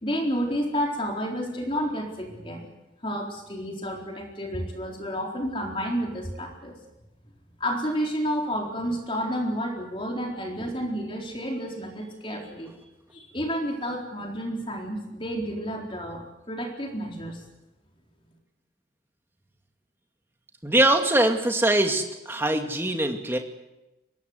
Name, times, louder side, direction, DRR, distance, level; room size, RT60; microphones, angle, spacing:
voice 1, 0.0-2.6 3.0-6.8 7.6-12.7 13.1-17.4, equal, 30° left, 0 dB, 4.1 m, -30 dB
voice 2, 20.6-23.4, right 1 dB, 10° right, 4 dB, 2.3 m, -22 dB
24.0 x 21.5 x 8.1 m, 0.98 s
head